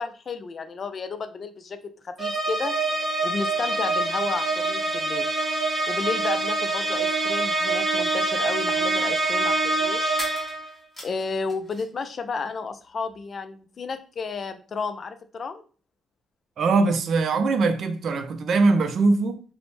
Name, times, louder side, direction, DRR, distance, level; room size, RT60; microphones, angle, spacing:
voice 1, 0.0-1.8 2.0-2.8 3.2-5.3 5.9-10.2 11.0-15.6, left 4 dB, 45° left, 0.3 m, -32 dB
sound 1, 2.2-10.7, right 2 dB, 20° right, 0.9 m, -25 dB
sound 2, 10.2-12.1 12.3-13.2, left 1 dB, 5° left, 1.3 m, -42 dB
voice 2, 16.6-19.4, right 3 dB, 60° right, 0.4 m, -21 dB
2.5 x 2.0 x 3.0 m
cardioid pair, 90°, 0 cm